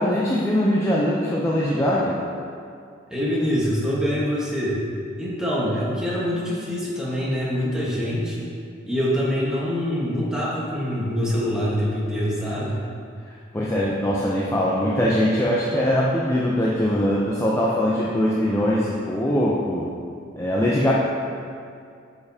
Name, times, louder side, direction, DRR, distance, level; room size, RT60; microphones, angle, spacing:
voice 1, 0.0-2.2 13.5-19.9 20.4-20.9, equal, 15° left, -5 dB, 0.5 m, -22 dB
voice 2, 3.1-4.8 5.2-8.5 8.8-12.8, equal, 5° right, -7 dB, 1.2 m, -25 dB
8.4 x 5.0 x 2.8 m, 2.3 s
head